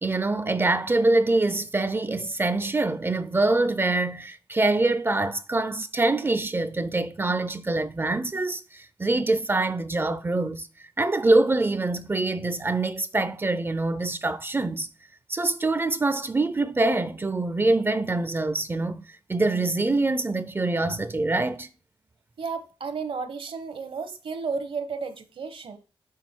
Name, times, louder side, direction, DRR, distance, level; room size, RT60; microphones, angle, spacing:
voice 1, 0.0-10.7 11.0-14.9 15.3-21.7, right 2 dB, 25° right, 0.4 m, -25 dB
voice 2, 22.4-25.8, right 5 dB, 70° right, 1.0 m, -33 dB
6.3 x 3.8 x 4.2 m
wide cardioid pair, 110°, 9 cm